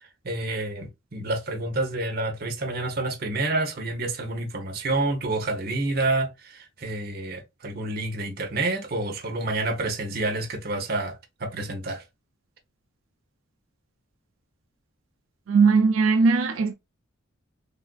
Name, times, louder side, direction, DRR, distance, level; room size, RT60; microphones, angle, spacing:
voice 1, 0.2-12.0, right 2 dB, 50° right, 0.8 m, -28 dB
voice 2, 15.5-16.7, right 4 dB, 90° right, 0.5 m, -19 dB
3.5 x 2.5 x 2.2 m
head